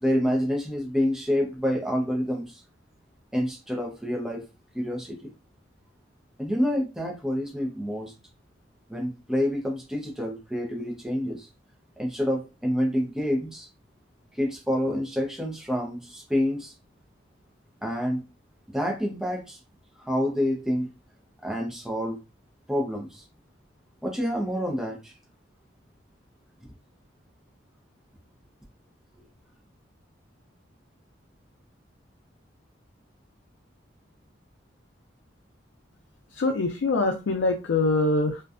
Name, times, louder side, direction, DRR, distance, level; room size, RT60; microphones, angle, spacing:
voice 1, 0.0-2.6 3.3-4.4 4.7-5.3 6.4-8.1 8.9-11.5 12.0-13.7 14.3-16.7 17.8-18.2 18.7-19.6 20.0-20.9 21.4-22.2 22.7-23.2 24.0-25.1, equal, 5° right, 0 dB, 0.5 m, -28 dB
voice 2, 36.3-38.4, left 2 dB, 80° left, 3 dB, 0.4 m, -24 dB
2.5 x 2.2 x 2.4 m, 0.28 s
head